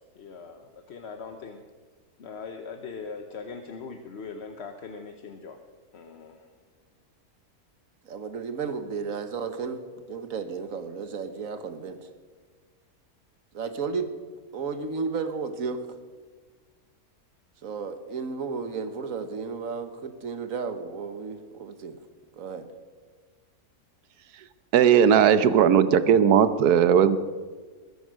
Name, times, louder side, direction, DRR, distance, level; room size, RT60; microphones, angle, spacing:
voice 1, 0.2-1.6 2.2-5.6 5.9-6.4, left 5 dB, 50° left, 6 dB, 1.0 m, -40 dB
voice 2, 8.0-9.8 10.1-12.1 13.5-14.1 14.5-15.9 17.6-22.0 22.4-22.7, right 5 dB, 60° right, 9 dB, 1.5 m, -33 dB
voice 3, 24.7-27.2, right 8 dB, 90° right, 13 dB, 1.3 m, -18 dB
21.0 x 9.2 x 6.3 m, 1.4 s
omnidirectional pair, 1.6 m